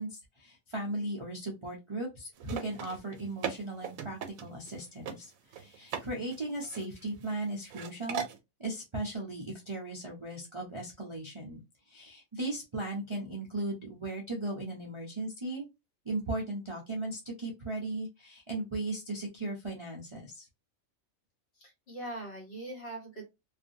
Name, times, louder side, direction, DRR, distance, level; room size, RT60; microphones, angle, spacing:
voice 1, 0.0-8.2 8.6-11.6 11.9-15.6 16.0-20.5, right 2 dB, 30° right, -3 dB, 0.6 m, -37 dB
sound 1, 2.4-4.7 5.1-5.2 5.5-6.1 6.3-7.4 7.7-8.4, right 8 dB, 80° right, 1.0 m, -38 dB
voice 2, 21.6-23.3, right 2 dB, 50° left, -1 dB, 1.5 m, -41 dB
2.6 x 2.5 x 2.6 m, 0.23 s
omnidirectional pair, 1.4 m